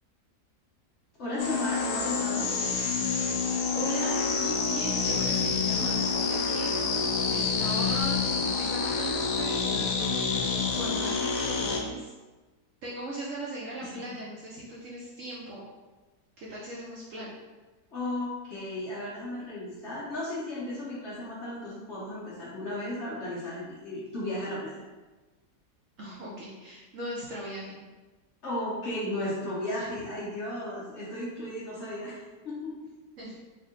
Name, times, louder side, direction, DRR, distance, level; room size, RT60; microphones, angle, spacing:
voice 1, 1.2-2.5 13.8-13.9 17.9-24.8 28.4-32.7, left 1 dB, 50° left, -7 dB, 1.0 m, -35 dB
sound 1, 1.4-11.8, left 5 dB, 70° left, 0.8 m, -28 dB
voice 2, 3.7-8.2 8.6-12.1 12.8-15.6 16.4-17.4 26.0-27.8 33.2-33.4, right 1 dB, 60° right, -5 dB, 0.9 m, -39 dB
3.6 x 2.4 x 3.7 m, 1.2 s
omnidirectional pair, 1.8 m